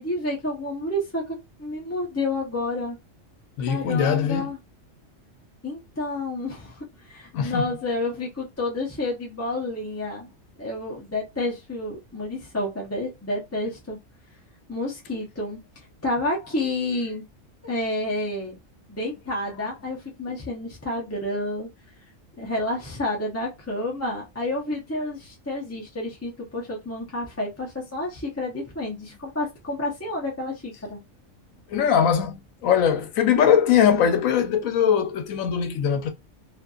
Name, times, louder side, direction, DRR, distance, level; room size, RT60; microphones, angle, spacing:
voice 1, 0.0-3.0 3.7-4.6 5.6-10.3 10.6-14.0 14.7-17.2 17.6-18.5 18.9-21.7 22.4-31.0, left 2 dB, 20° left, 0.4 m, -30 dB
voice 2, 3.6-4.5 7.3-7.7 31.7-36.1, left 8 dB, 90° left, 1.1 m, -21 dB
2.5 x 2.5 x 2.3 m
omnidirectional pair, 1.4 m